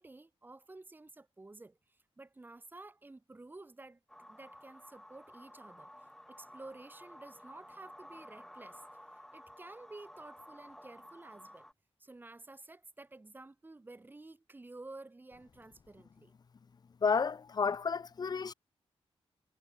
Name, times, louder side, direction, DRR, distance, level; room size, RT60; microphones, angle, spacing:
voice 1, 0.0-5.9 6.3-8.8 9.1-11.7 12.0-16.3, right 2 dB, 20° right, 6.4 m, -52 dB
sound 1, 4.1-11.7, equal, 5° left, 2.1 m, -54 dB
voice 2, 17.0-18.5, left 5 dB, 40° left, 1.2 m, -31 dB
wide cardioid pair, 160°, 10 cm